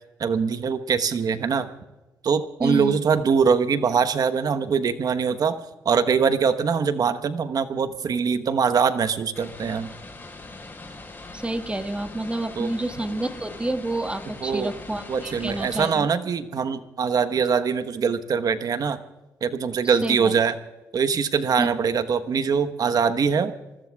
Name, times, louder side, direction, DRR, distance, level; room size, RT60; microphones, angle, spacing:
voice 1, 0.2-1.7 2.2-5.6 5.8-9.9 12.6-12.7 14.4-14.7 15.1-19.0 19.4-20.6 20.9-23.5, right 6 dB, 60° right, 10 dB, 1.1 m, -23 dB
voice 2, 2.6-3.0 11.3-16.1 19.8-20.3 21.6-21.7, right 1 dB, 15° right, 7 dB, 1.7 m, -29 dB
sound 1, 9.3-15.9, left 2 dB, 30° left, 4.8 m, -41 dB
28.0 x 20.5 x 2.4 m, 1.1 s
supercardioid pair, 55°, 7 cm